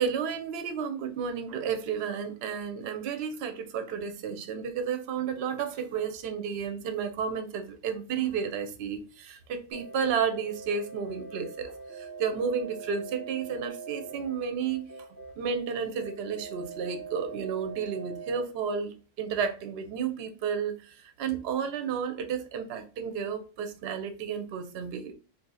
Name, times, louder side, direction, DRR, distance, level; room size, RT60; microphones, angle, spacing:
voice 1, 0.0-14.9 15.4-25.1, right 6 dB, 65° right, 0.8 m, -32 dB
sound 1, 9.7-18.4, right 5 dB, 20° right, 0.7 m, -43 dB
2.6 x 2.6 x 3.9 m
omnidirectional pair, 1.3 m